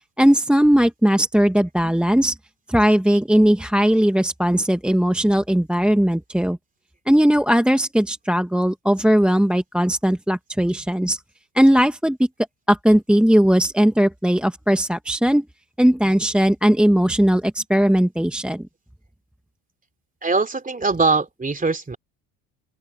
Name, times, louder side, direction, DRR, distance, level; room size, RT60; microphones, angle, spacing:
voice 1, 0.2-2.4 2.7-6.6 7.1-11.2 11.5-12.2 12.7-15.4 15.8-18.7, equal, ahead, 1.1 m, -18 dB
voice 2, 20.2-22.0, right 4 dB, 20° right, 3.1 m, -21 dB
open air
supercardioid pair, 95°, 44 cm